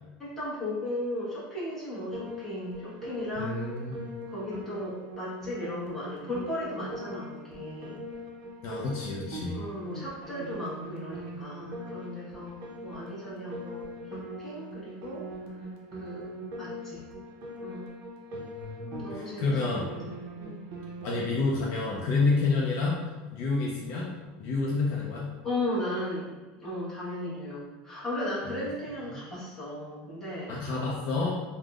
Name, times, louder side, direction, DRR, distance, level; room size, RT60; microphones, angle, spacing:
voice 1, 0.2-3.7 4.3-8.0 9.5-15.6 15.9-17.0 17.6-17.9 18.8-19.9 20.4-20.6 25.4-30.5, left 1 dB, 5° left, -10 dB, 1.1 m, -36 dB
Piano, 2.1-21.3, equal, 50° right, 0.6 m, -42 dB
voice 2, 3.4-4.1 8.6-9.6 18.3-19.8 21.0-23.0 23.3-24.1 24.4-25.3 29.1-29.2 30.5-31.3, left 3 dB, 50° left, -3 dB, 0.4 m, -29 dB
3.4 x 2.0 x 2.3 m, 1.3 s
supercardioid pair, 145°, 5 cm